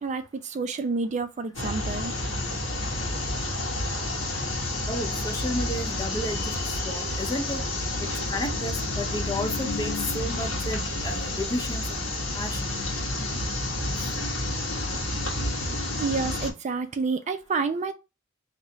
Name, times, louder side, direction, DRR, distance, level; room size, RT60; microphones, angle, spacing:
voice 1, 0.0-2.1 16.0-17.9, right 4 dB, 35° right, 0.4 m, -29 dB
sound 1, 1.5-16.5, left 2 dB, 90° left, 1.4 m, -30 dB
voice 2, 4.9-7.6 8.3-12.0 12.3-12.6 14.0-14.1, left 1 dB, 20° left, 0.6 m, -32 dB
3.1 x 2.8 x 3.4 m
head